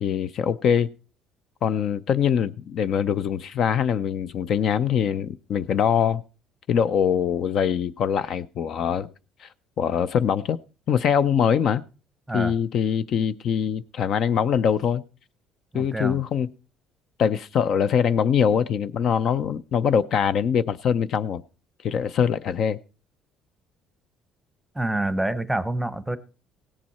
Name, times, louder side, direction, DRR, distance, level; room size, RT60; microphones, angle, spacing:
voice 1, 0.0-0.9 1.6-6.2 6.7-9.1 9.4-9.5 9.8-10.6 10.9-11.8 12.3-15.0 15.7-16.5 17.2-21.4 21.8-22.8, left 8 dB, 55° left, 0.5 m, -23 dB
voice 2, 15.7-16.2 24.7-26.2, right 1 dB, 5° right, 0.8 m, -27 dB
17.0 x 7.5 x 4.2 m
cardioid pair, 125°, 0 cm